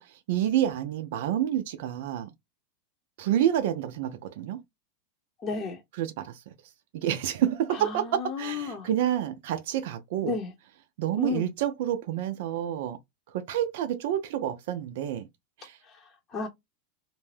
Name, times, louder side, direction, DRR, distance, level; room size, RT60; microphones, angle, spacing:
voice 1, 0.0-2.3 3.2-4.6 6.0-6.4 6.9-8.1 8.4-10.4 11.0-13.0 13.3-15.3 15.6-15.8, right 11 dB, 70° right, 0.4 m, -28 dB
voice 2, 5.4-5.8 7.7-8.9 10.2-10.5 11.2-11.5 15.8-16.5, left 4 dB, 30° left, 0.7 m, -33 dB
2.5 x 2.2 x 3.2 m
hypercardioid pair, 115°, 0 cm